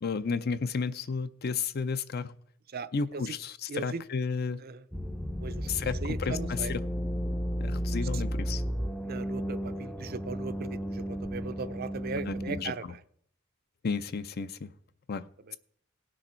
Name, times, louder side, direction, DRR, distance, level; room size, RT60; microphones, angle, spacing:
voice 1, 0.0-2.3 2.9-4.6 5.7-6.8 7.6-8.6 12.3-12.9 13.8-14.7 15.1-15.3, left 5 dB, 50° left, 13 dB, 0.5 m, -32 dB
voice 2, 3.7-4.0 4.6-4.8 5.4-5.7 6.0-6.7 9.0-13.0 15.5-15.6, right 4 dB, 50° right, 12 dB, 0.5 m, -38 dB
sound 1, 4.9-12.6, equal, 5° left, 0.5 m, -33 dB
17.5 x 6.3 x 4.4 m, 0.65 s
head